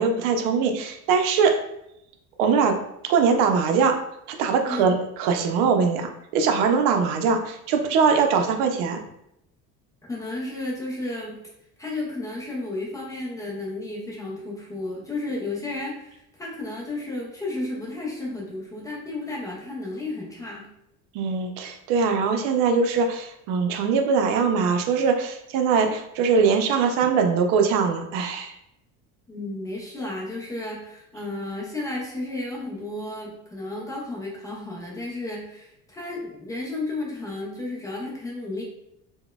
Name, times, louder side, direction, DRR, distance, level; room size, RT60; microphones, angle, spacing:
voice 1, 0.0-1.6 2.4-2.8 3.0-4.0 4.3-9.0 21.1-28.5, right 5 dB, 85° right, 5 dB, 0.5 m, -22 dB
voice 2, 10.0-11.4 11.8-20.7 29.3-38.6, left 2 dB, 10° left, -5 dB, 0.4 m, -33 dB
3.9 x 2.1 x 2.2 m, 0.81 s
cardioid pair, 175°, 32 cm